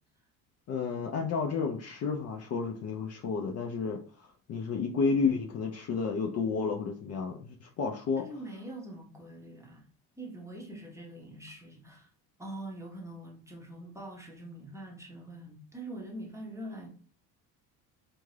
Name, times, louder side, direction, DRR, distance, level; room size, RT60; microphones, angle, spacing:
voice 1, 0.7-8.3, left 5 dB, 40° left, 0.5 m, -31 dB
voice 2, 8.2-9.9 10.2-12.1 12.4-16.9, right 1 dB, 10° right, 0.7 m, -44 dB
2.6 x 2.3 x 3.2 m
cardioid pair, 105°, 38 cm